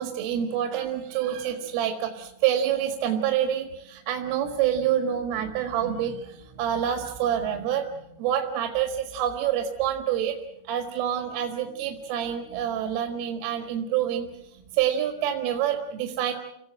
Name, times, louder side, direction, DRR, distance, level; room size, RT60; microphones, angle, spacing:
voice 1, 0.0-10.4 10.7-16.3, right 10 dB, 85° right, 5 dB, 4.2 m, -27 dB
29.5 x 18.5 x 7.6 m, 0.83 s
omnidirectional pair, 5.7 m